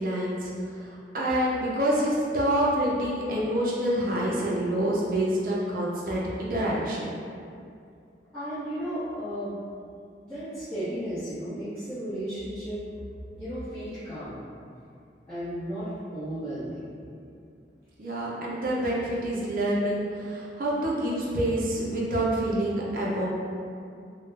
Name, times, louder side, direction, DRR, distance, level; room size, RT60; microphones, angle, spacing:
voice 1, 0.0-7.1 18.0-23.3, right 1 dB, 50° right, -5 dB, 0.5 m, -27 dB
voice 2, 8.3-9.6 10.2-12.8 13.3-14.4 15.3-16.8, equal, 10° left, -16 dB, 0.6 m, -34 dB
2.2 x 2.0 x 3.2 m, 2.4 s
head